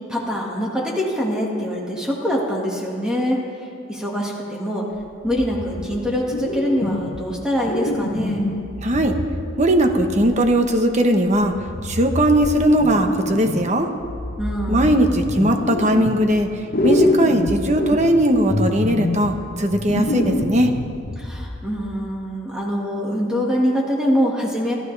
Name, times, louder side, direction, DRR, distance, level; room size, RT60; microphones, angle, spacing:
voice 1, 0.1-3.4 3.9-4.9 5.2-8.5 14.4-15.0 21.2-24.7, equal, 5° right, -3 dB, 1.9 m, -24 dB
sound 1, 5.2-6.0 6.3-7.3 7.7-10.5 11.3-13.7 14.0-16.5 16.7-21.7, left 2 dB, 45° left, 1.0 m, -26 dB
voice 2, 8.8-9.2 9.6-11.5 11.8-13.9 14.7-16.5 16.8-20.7, right 1 dB, 35° right, 5 dB, 1.2 m, -18 dB
28.0 x 13.0 x 3.4 m, 2.4 s
head